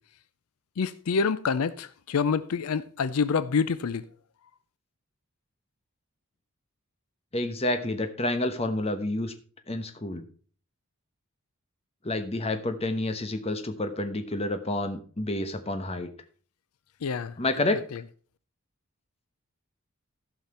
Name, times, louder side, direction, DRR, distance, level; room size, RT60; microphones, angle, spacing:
voice 1, 0.8-4.0 17.0-17.3 17.7-18.0, left 5 dB, 80° left, 0.5 m, -27 dB
voice 2, 7.3-9.3 9.7-10.2 12.0-16.1 17.4-17.8, left 2 dB, 30° left, 1.0 m, -29 dB
14.5 x 5.8 x 4.3 m
head